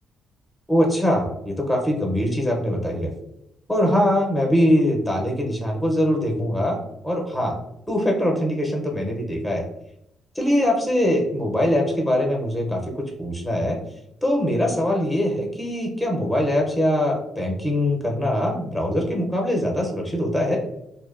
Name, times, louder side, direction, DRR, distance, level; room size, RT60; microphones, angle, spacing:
voice 1, 0.7-3.1 3.7-6.8 7.0-7.6 7.9-9.7 10.3-13.8 14.2-20.6, equal, 5° left, 0 dB, 0.6 m, -22 dB
2.7 x 2.1 x 2.3 m, 0.79 s
cardioid pair, 90°, 0 cm